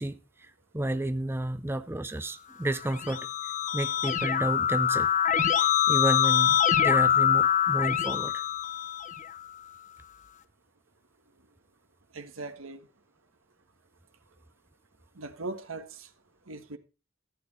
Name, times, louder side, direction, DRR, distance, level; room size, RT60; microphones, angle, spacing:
voice 1, 0.0-5.1 5.5-8.4, right 1 dB, 10° right, 0.5 m, -32 dB
Keyboard (musical), 2.8-9.4, left 9 dB, 40° left, 0.9 m, -25 dB
voice 2, 12.1-12.9 15.1-16.1 16.5-16.8, right 3 dB, 80° right, 1.5 m, -39 dB
14.5 x 8.8 x 4.3 m
head